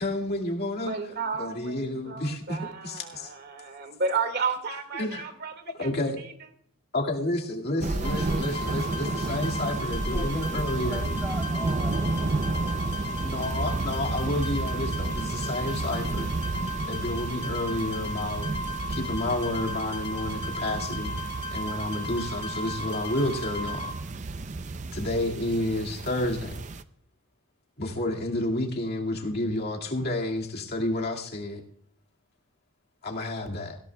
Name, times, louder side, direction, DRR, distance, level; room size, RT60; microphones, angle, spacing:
voice 1, 0.0-0.9 1.4-3.3 4.9-5.3 5.8-6.2 6.9-11.1 13.2-16.3 16.9-18.5 18.9-21.1 21.5-23.9 24.9-26.6 27.8-31.6 33.0-33.8, left 1 dB, 45° left, 0 dB, 2.1 m, -30 dB
voice 2, 0.8-5.5 5.8-5.9 6.2-6.3, right 4 dB, 50° right, 8 dB, 2.0 m, -32 dB
sound 1, 7.8-26.8, right 3 dB, 35° right, 0.5 m, -32 dB
sound 2, 8.0-23.9, equal, 25° left, 2.0 m, -36 dB
voice 3, 9.9-12.5, equal, 5° right, -1 dB, 2.1 m, -40 dB
18.0 x 16.5 x 2.3 m, 0.64 s
head